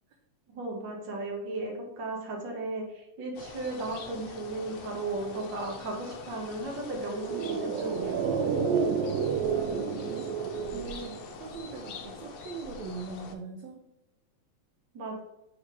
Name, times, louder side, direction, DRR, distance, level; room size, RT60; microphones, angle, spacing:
voice 1, 0.5-8.2 14.9-15.2, right 2 dB, 40° right, -1 dB, 1.8 m, -35 dB
sound 1, 3.4-13.4, left 4 dB, 75° left, 1.5 m, -44 dB
sound 2, 7.1-11.7 11.9-12.0, right 6 dB, 90° right, 2.5 m, -30 dB
voice 2, 9.0-10.2 10.7-13.9, right 4 dB, 75° right, 2 dB, 1.7 m, -41 dB
6.1 x 4.7 x 4.2 m, 0.93 s
omnidirectional pair, 4.0 m